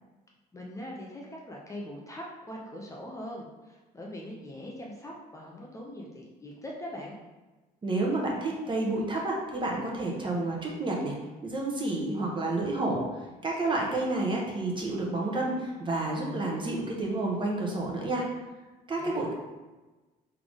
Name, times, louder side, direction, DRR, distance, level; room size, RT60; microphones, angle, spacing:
voice 1, 0.5-7.2 19.0-19.3, left 1 dB, 20° left, -2 dB, 0.7 m, -42 dB
voice 2, 7.8-11.1 11.4-13.0 13.4-18.2 18.9-19.3, right 2 dB, 30° right, -2 dB, 1.0 m, -30 dB
3.7 x 3.5 x 3.5 m, 1.2 s
cardioid pair, 110°, 17 cm